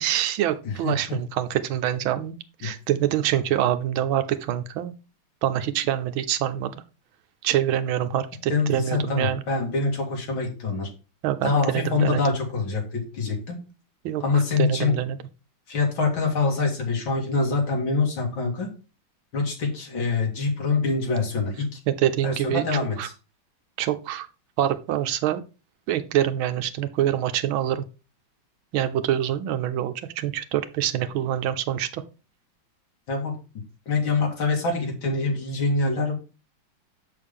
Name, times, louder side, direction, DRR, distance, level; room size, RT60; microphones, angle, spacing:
voice 1, 0.0-2.3 2.6-4.9 5.4-6.7 7.4-9.4 11.2-12.2 14.0-15.2 21.9-22.6 23.0-23.1 23.8-24.3 24.6-25.4 25.9-27.8 28.7-32.0, right 11 dB, 85° right, 11 dB, 1.5 m, -25 dB
voice 2, 0.6-1.2 2.6-2.7 8.5-10.9 11.4-13.6 14.2-14.9 15.7-18.7 19.3-21.8 22.2-23.1 33.1-33.4 33.9-36.1, left 4 dB, 75° left, 1 dB, 2.9 m, -25 dB
6.9 x 6.2 x 3.5 m, 0.32 s
omnidirectional pair, 2.2 m